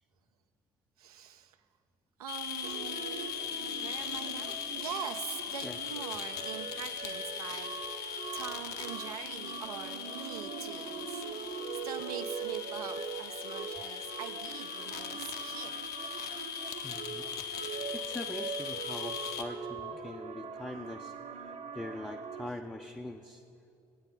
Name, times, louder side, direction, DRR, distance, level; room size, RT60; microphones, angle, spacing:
voice 1, 1.0-1.6 2.2-3.2 3.8-11.6 11.8-15.8, right 9 dB, 80° right, 7 dB, 0.5 m, -43 dB
sound 1, 2.3-19.4, left 8 dB, 60° left, 0.9 m, -40 dB
sound 2, 2.6-22.5, right 5 dB, 40° right, 0.9 m, -42 dB
voice 2, 16.8-17.3 17.9-21.1 21.4-23.4, left 2 dB, 5° left, 4 dB, 0.4 m, -43 dB
12.5 x 8.7 x 5.7 m, 2.6 s
figure-of-eight pair, 60°, 19 cm